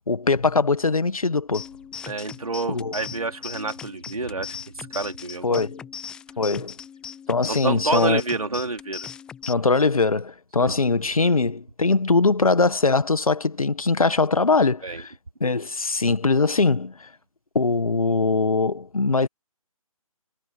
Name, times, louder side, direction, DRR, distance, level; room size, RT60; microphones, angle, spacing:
voice 1, 0.1-1.6 2.7-2.9 5.4-5.8 6.4-6.7 7.3-8.2 9.5-15.1 15.4-17.1 17.5-19.3, left 3 dB, 75° left, 1.6 m, -21 dB
sound 1, 1.5-9.5, left 7 dB, 5° left, 0.6 m, -39 dB
voice 2, 2.0-5.6 7.5-9.1 10.6-10.7 14.8-15.0, right 3 dB, 75° right, 3.4 m, -28 dB
figure-of-eight pair, 150°, 18 cm